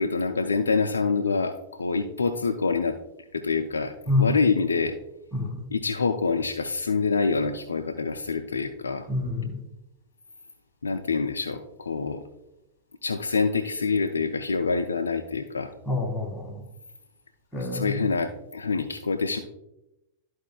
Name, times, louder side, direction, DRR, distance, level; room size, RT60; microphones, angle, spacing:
voice 1, 0.0-3.0 3.3-4.9 5.7-9.1 10.8-12.2 13.0-15.7 17.6-19.4, left 4 dB, 80° left, 4 dB, 0.5 m, -26 dB
voice 2, 5.3-5.6 9.1-9.5 15.9-16.6 17.5-18.1, left 2 dB, 10° left, -2 dB, 2.0 m, -27 dB
13.0 x 4.5 x 2.3 m, 0.89 s
figure-of-eight pair, 95°, 0 cm